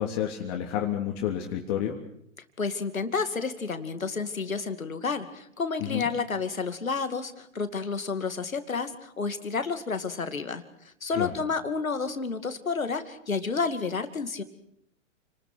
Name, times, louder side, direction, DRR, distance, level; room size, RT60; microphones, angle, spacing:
voice 1, 0.0-1.9 5.8-6.1 11.2-11.3, left 10 dB, 45° left, 0 dB, 3.5 m, -29 dB
voice 2, 2.6-10.6 11.0-14.4, left 4 dB, 90° left, 9 dB, 2.5 m, -30 dB
29.5 x 20.0 x 6.2 m, 0.73 s
hypercardioid pair, 115°, 40 cm